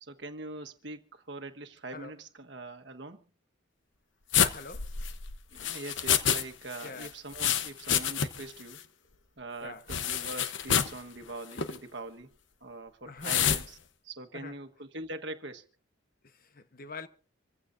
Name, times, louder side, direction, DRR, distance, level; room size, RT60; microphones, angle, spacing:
voice 1, 0.0-3.2 5.5-8.8 9.4-12.3 12.6-13.8 14.0-15.7, right 2 dB, 60° right, 1.4 m, -43 dB
sound 1, 4.3-6.4 6.7-8.5 8.8-8.9 9.9-11.0 11.5-11.8 13.2-13.6, left 9 dB, 65° left, 1.0 m, -28 dB
voice 2, 4.3-4.9 6.8-7.1 9.6-9.8 13.1-13.6 14.3-14.6 16.2-17.1, left 4 dB, 45° left, 1.1 m, -44 dB
26.5 x 15.5 x 2.6 m
head